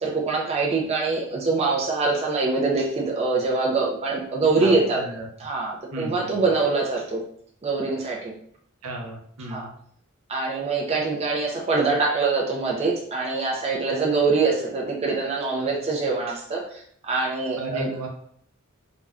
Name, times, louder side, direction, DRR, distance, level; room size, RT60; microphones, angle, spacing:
voice 1, 0.0-5.0 5.4-7.2 7.6-8.3 9.5-9.7 10.3-18.1, right 3 dB, 30° right, -2 dB, 0.4 m, -24 dB
voice 2, 4.6-5.3 5.9-6.4 8.8-9.7 17.6-18.1, right 1 dB, 80° right, 1 dB, 0.7 m, -34 dB
2.5 x 2.1 x 3.4 m, 0.63 s
head